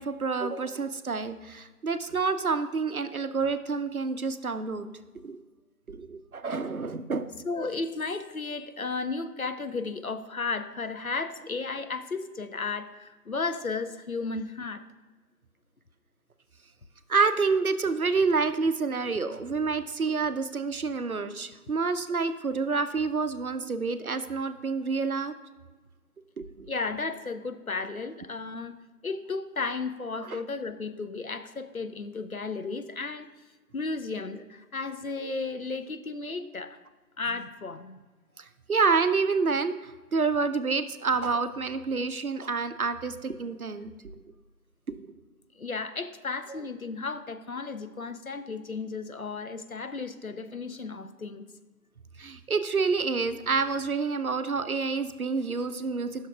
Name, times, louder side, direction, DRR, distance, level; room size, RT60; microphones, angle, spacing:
voice 1, 0.0-4.9 5.1-5.4 5.9-7.3 17.1-25.3 26.4-26.7 30.2-30.4 38.4-43.9 44.9-45.1 52.2-56.3, right 4 dB, 65° right, 10 dB, 0.5 m, -28 dB
voice 2, 7.4-14.8 26.7-28.8 29.0-33.3 33.7-36.8 37.2-38.0 45.6-51.5, left 4 dB, 65° left, 9 dB, 0.6 m, -34 dB
11.0 x 6.3 x 2.3 m, 1.3 s
figure-of-eight pair, 180°, 46 cm